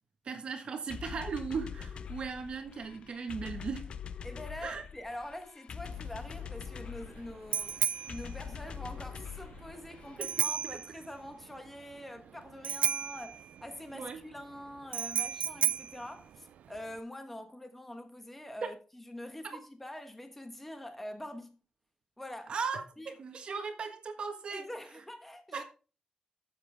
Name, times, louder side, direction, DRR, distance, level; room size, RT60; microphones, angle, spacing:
voice 1, 0.2-3.9 4.6-4.8 10.2-10.3 13.9-14.2 18.6-18.7 19.5-19.6 22.5-22.8 23.2-24.7 25.5-25.6, right 5 dB, 45° right, 1.4 m, -37 dB
sound 1, 0.9-10.5, left 7 dB, 50° left, 0.6 m, -44 dB
voice 2, 4.2-21.6 22.2-22.5 23.0-23.1 24.5-25.6, left 1 dB, 10° left, 1.3 m, -45 dB
Bicycle bell, 5.8-17.0, right 9 dB, 75° right, 0.5 m, -35 dB
13.0 x 7.3 x 3.5 m
wide cardioid pair, 150°, 2 cm